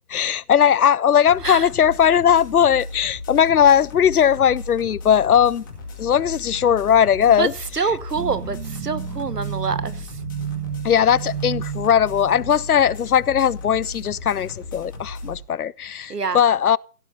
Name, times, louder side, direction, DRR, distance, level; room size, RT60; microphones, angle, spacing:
voice 1, 0.1-5.6 6.0-7.5 10.8-16.8, left 8 dB, 70° left, 0.5 m, -18 dB
sound 1, 1.3-15.4, left 3 dB, 15° left, 2.1 m, -37 dB
voice 2, 7.7-10.1 16.1-16.4, right 5 dB, 85° right, 1.2 m, -26 dB
sound 2, 8.1-12.7, right 9 dB, 30° right, 1.6 m, -31 dB
16.0 x 8.5 x 4.2 m
figure-of-eight pair, 160°, 46 cm